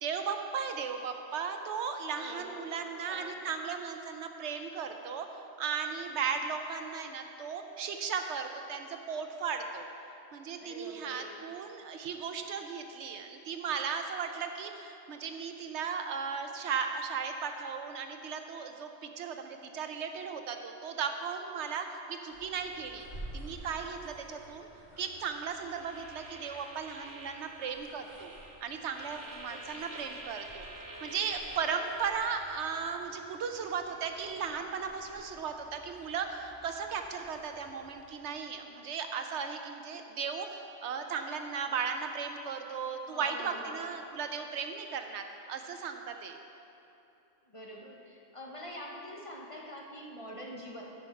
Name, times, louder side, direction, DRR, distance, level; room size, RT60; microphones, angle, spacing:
voice 1, 0.0-9.9 10.3-23.1 23.3-24.7 25.0-28.3 28.6-30.7 31.0-46.4, right 6 dB, 70° right, 6 dB, 0.9 m, -36 dB
voice 2, 2.2-3.3 10.6-11.4 29.0-29.1 29.4-30.1 43.1-43.8 47.5-50.8, equal, 30° left, -2 dB, 0.9 m, -46 dB
sound 1, 22.3-38.1, right 1 dB, 65° left, 2.6 m, -52 dB
sound 2, 25.7-32.4, right 2 dB, 20° right, 0.6 m, -48 dB
13.0 x 5.8 x 4.5 m, 2.9 s
omnidirectional pair, 1.3 m